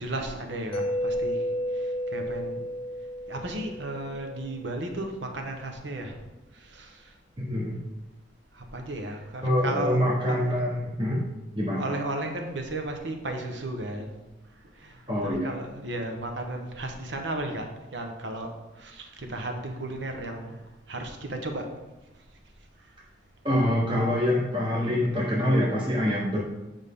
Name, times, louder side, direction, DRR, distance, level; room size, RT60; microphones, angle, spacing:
voice 1, 0.0-1.4 1.7-2.7 3.3-6.1 6.5-7.1 8.5-10.4 11.7-14.1 14.8-18.5 18.8-20.6 20.9-21.7, right 1 dB, 70° right, 4 dB, 1.1 m, -34 dB
Mallet percussion, 0.7-4.5, equal, 30° left, 0.3 m, -31 dB
voice 2, 7.4-7.8 9.4-11.2 11.5-11.9 15.1-15.5 23.4-26.4, left 1 dB, 25° right, -5 dB, 1.1 m, -25 dB
8.9 x 5.4 x 3.7 m, 1.0 s
head